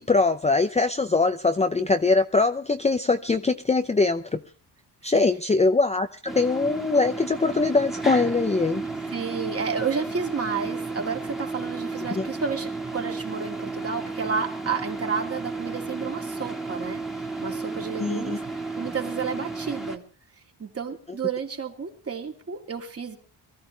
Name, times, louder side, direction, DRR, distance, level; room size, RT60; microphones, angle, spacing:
voice 1, 0.0-4.4 5.0-8.8 12.2-12.3 18.0-18.4, left 3 dB, 15° left, 8 dB, 0.6 m, -22 dB
sound 1, 6.3-20.0, right 3 dB, ahead, 2.1 m, -33 dB
voice 2, 9.0-18.4 18.8-20.0 20.6-23.2, right 5 dB, 35° right, 3 dB, 2.7 m, -31 dB
23.0 x 14.0 x 3.3 m, 0.38 s
cardioid pair, 115°, 43 cm